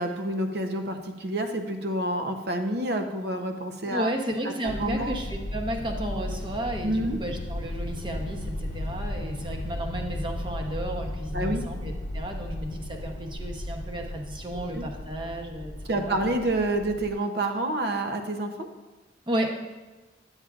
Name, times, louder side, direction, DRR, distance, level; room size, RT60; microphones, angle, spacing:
voice 1, 0.0-4.1 4.4-4.5 4.8-5.2 6.8-7.2 11.3-11.6 14.7-14.8 15.9-18.7, right 1 dB, 60° right, 6 dB, 0.7 m, -28 dB
voice 2, 3.9-16.3 19.3-19.5, right 1 dB, 25° right, 2 dB, 0.8 m, -33 dB
sound 1, 4.7-17.1, left 1 dB, 75° left, 0.7 m, -35 dB
9.8 x 8.1 x 2.4 m, 1.2 s
head